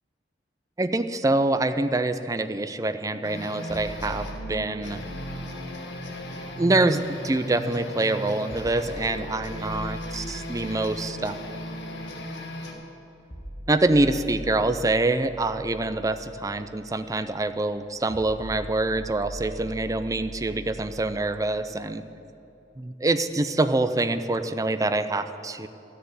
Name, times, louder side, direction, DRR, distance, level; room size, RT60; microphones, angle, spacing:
voice 1, 0.8-5.0 6.6-11.5 13.7-22.0 22.8-25.7, right 2 dB, 20° right, 10 dB, 0.5 m, -25 dB
sound 1, 3.2-12.7, equal, 75° left, 1.6 m, -36 dB
sound 2, 3.7-7.7 8.5-22.5, equal, 45° left, 2.3 m, -43 dB
13.0 x 6.8 x 9.6 m, 2.7 s
head